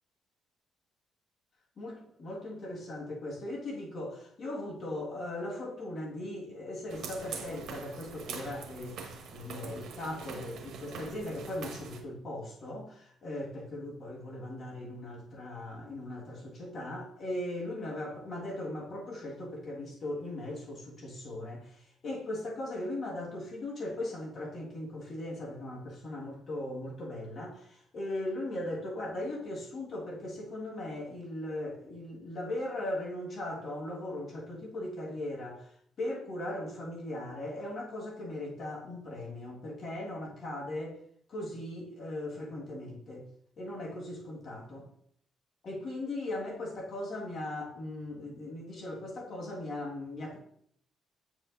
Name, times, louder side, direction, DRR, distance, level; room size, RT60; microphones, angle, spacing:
voice 1, 1.8-35.7 36.0-41.0 41.3-43.3 43.6-44.9 45.6-50.4, left 1 dB, 55° left, 1.6 m, -38 dB
sound 1, 6.9-12.0, right 5 dB, 75° right, 1.1 m, -43 dB
8.6 x 4.7 x 2.5 m
cardioid pair, 90°, 0 cm